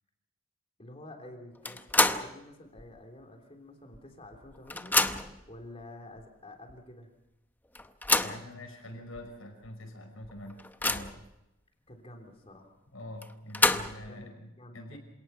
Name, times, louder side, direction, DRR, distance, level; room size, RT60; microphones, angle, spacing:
voice 1, 0.8-5.0 5.5-7.1 11.9-12.7 14.1-15.0, left 1 dB, 30° left, 3 dB, 3.3 m, -49 dB
sound 1, 1.6-2.4 2.8-2.9 3.9-4.0 4.3-5.4 6.2-6.3 6.7-6.8 7.7-8.5 9.2-9.3 9.6-9.7 10.2-11.3 13.2-14.1, left 2 dB, 10° left, 0.7 m, -28 dB
voice 2, 8.2-11.1 12.9-15.0, left 1 dB, 90° left, 3 dB, 5.7 m, -45 dB
27.0 x 18.0 x 5.8 m, 0.91 s
head